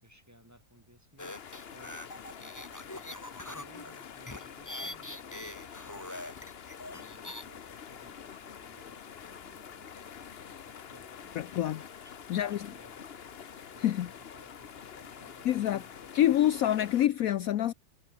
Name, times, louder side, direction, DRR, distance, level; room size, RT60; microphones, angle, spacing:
voice 1, 0.0-6.2 7.0-13.0 13.7-16.4, equal, 10° right, 6.8 m, -59 dB
sound 1, 1.2-17.1, left 7 dB, 45° left, 1.0 m, -47 dB
sound 2, 1.2-7.4, left 1 dB, 10° left, 2.2 m, -43 dB
voice 2, 11.4-11.8 12.3-12.7 13.8-14.1 15.4-15.8 16.1-17.7, left 12 dB, 70° left, 1.1 m, -26 dB
omnidirectional pair, 1.7 m